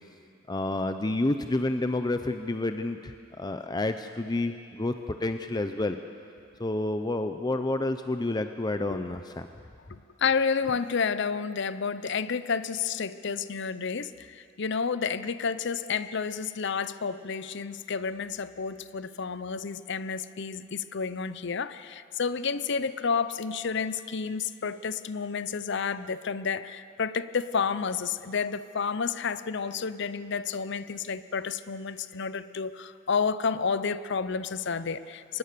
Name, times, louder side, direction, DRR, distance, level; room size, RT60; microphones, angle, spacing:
voice 1, 0.5-6.0 6.6-9.5, left 2 dB, 20° left, 8 dB, 0.6 m, -29 dB
voice 2, 9.9-35.4, left 5 dB, 65° left, 14 dB, 0.7 m, -30 dB
23.5 x 19.5 x 6.8 m, 2.5 s
head